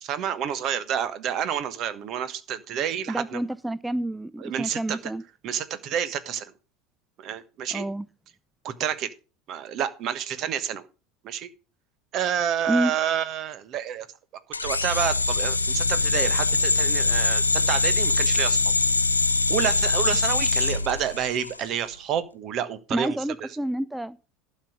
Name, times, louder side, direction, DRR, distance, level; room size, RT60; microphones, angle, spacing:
voice 1, 0.0-3.4 4.4-5.0 5.4-6.4 7.2-7.8 8.6-9.1 9.5-10.9 11.2-11.5 12.1-14.1 14.6-18.6 19.5-23.2, right 9 dB, 45° right, 13 dB, 1.2 m, -29 dB
voice 2, 3.1-5.2 7.7-8.1 12.7-12.9 22.9-24.2, right 1 dB, 5° right, 18 dB, 0.4 m, -28 dB
sound 1, 14.5-21.6, left 3 dB, 90° left, 0.4 m, -23 dB
12.0 x 5.5 x 6.3 m, 0.33 s
figure-of-eight pair, 75°, 0 cm